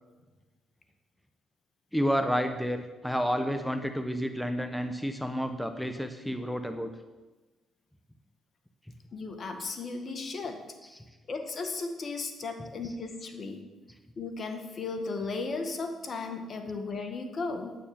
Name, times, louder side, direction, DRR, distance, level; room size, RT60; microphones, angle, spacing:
voice 1, 1.9-6.9 11.0-11.1 12.8-12.9, equal, 5° left, 8 dB, 1.0 m, -30 dB
voice 2, 9.1-10.6 11.3-13.7 14.2-17.8, left 3 dB, 50° left, 6 dB, 1.7 m, -35 dB
9.3 x 8.8 x 7.2 m, 1.2 s
supercardioid pair, 65°, 0 cm